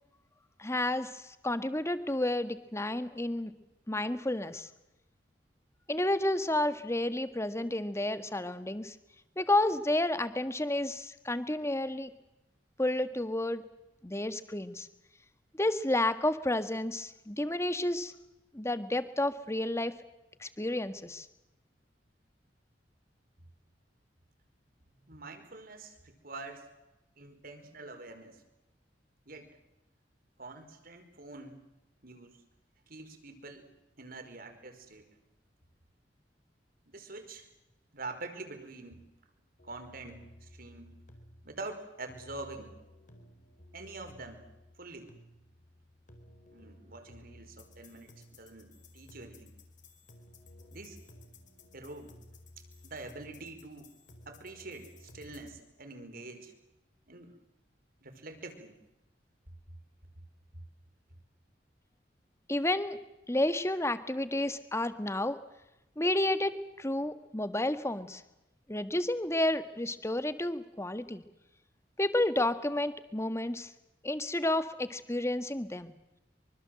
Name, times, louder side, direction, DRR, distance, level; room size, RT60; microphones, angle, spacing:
voice 1, 0.6-3.5 3.9-4.7 5.9-8.9 9.4-12.1 12.8-13.6 14.0-14.9 15.6-18.1 18.5-19.9 20.4-21.2 62.5-63.0 63.3-65.4 66.0-68.2 68.7-71.2 72.0-73.7 74.0-75.9, left 1 dB, 15° left, 11 dB, 1.6 m, -31 dB
voice 2, 25.0-26.7 27.2-28.4 29.3-29.5 30.4-31.6 32.0-32.4 32.9-33.7 34.0-35.1 36.9-37.5 37.9-39.1 39.6-41.0 41.4-42.7 43.7-44.4 44.8-45.1 46.5-49.5 50.7-51.0 51.7-52.2 52.8-53.9 54.3-56.5 57.1-57.4 58.0-58.7, right 3 dB, 55° right, 7 dB, 4.9 m, -45 dB
sound 1, 39.6-55.6, left 1 dB, 45° left, 4.4 m, -55 dB
25.0 x 25.0 x 7.8 m, 0.93 s
head